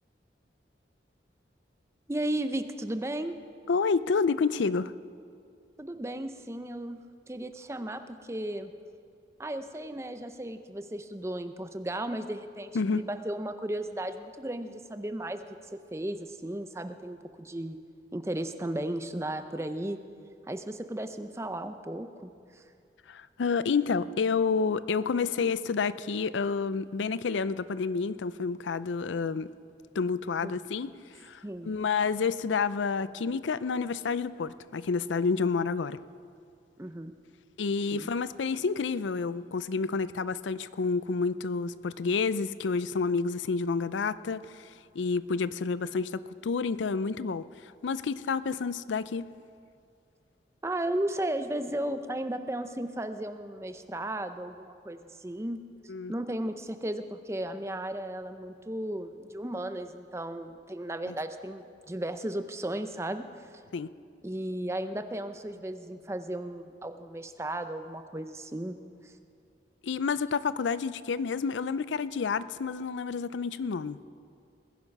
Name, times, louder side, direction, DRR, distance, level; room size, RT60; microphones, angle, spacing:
voice 1, 2.1-3.4 5.8-7.0 7.3-8.7 9.4-15.4 15.9-17.8 18.1-20.0 20.5-22.6 30.4-30.5 31.4-31.7 36.8-37.1 37.9-38.1 50.6-55.6 56.1-63.2 64.2-68.8 69.0-69.1, right 1 dB, 15° right, 9 dB, 0.6 m, -35 dB
voice 2, 3.7-4.9 12.7-13.1 23.1-29.5 29.9-30.9 31.2-36.0 37.6-44.7 44.9-47.4 47.8-49.3 55.9-56.1 61.1-61.2 63.7-63.9 69.8-74.0, left 5 dB, 85° left, 16 dB, 0.5 m, -29 dB
20.0 x 10.5 x 5.4 m, 2.3 s
head